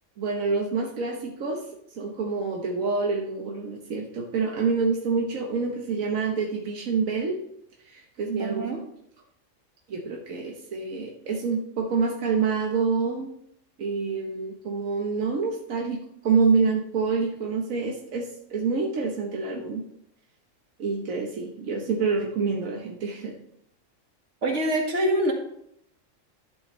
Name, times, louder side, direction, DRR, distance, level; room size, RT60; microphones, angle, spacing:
voice 1, 0.2-1.6 2.0-7.4 7.8-8.6 9.9-13.3 13.8-19.8 20.8-23.4, right 4 dB, 90° right, 1 dB, 1.5 m, -27 dB
voice 2, 8.4-8.8 24.4-25.3, right 1 dB, 65° right, 0 dB, 2.2 m, -25 dB
11.5 x 8.7 x 3.1 m, 0.72 s
omnidirectional pair, 1.4 m